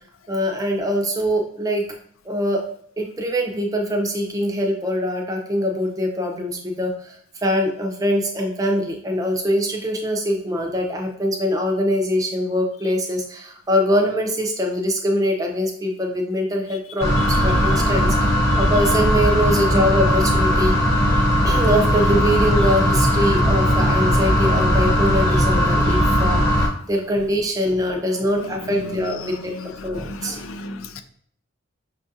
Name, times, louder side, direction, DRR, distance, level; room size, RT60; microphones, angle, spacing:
voice 1, 0.3-1.8 2.2-2.6 3.0-20.8 21.4-30.4, equal, 15° right, 1 dB, 0.5 m, -23 dB
sound 1, 17.0-26.7, equal, 15° left, 0.8 m, -18 dB
voice 2, 29.0-31.0, left 3 dB, 85° left, 9 dB, 0.4 m, -35 dB
5.9 x 2.4 x 2.7 m, 0.62 s
head